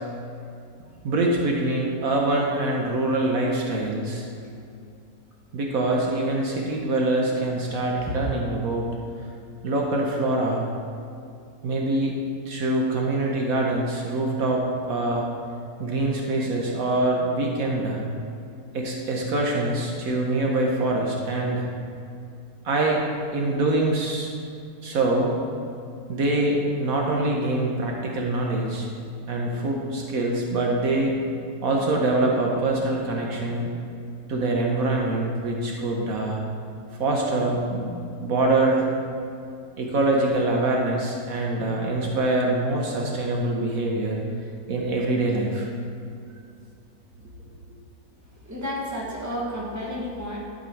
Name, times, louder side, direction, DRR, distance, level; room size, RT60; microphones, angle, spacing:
voice 1, 1.0-4.2 5.5-8.9 9.6-10.7 11.6-12.2 12.5-15.2 15.8-18.0 18.7-21.7 22.6-23.0 23.3-24.3 24.8-25.3 26.1-28.9 29.3-31.1 31.6-33.7 34.3-36.4 37.0-37.9 38.2-38.8 39.8-44.2 44.7-45.7, right 2 dB, 70° right, -1 dB, 1.3 m, -24 dB
voice 2, 48.4-50.4, equal, 10° right, -5 dB, 1.5 m, -31 dB
11.5 x 5.2 x 4.5 m, 2.5 s
omnidirectional pair, 1.6 m